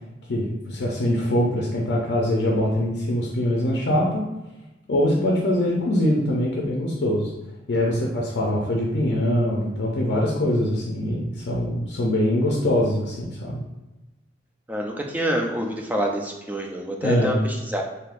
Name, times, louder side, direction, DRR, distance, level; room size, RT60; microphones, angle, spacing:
voice 1, 0.3-4.3 4.9-7.3 7.7-13.6 17.0-17.4, left 1 dB, 65° left, -2 dB, 0.5 m, -23 dB
voice 2, 14.7-17.8, equal, 10° right, 1 dB, 0.4 m, -26 dB
3.5 x 2.7 x 2.4 m, 1.0 s
head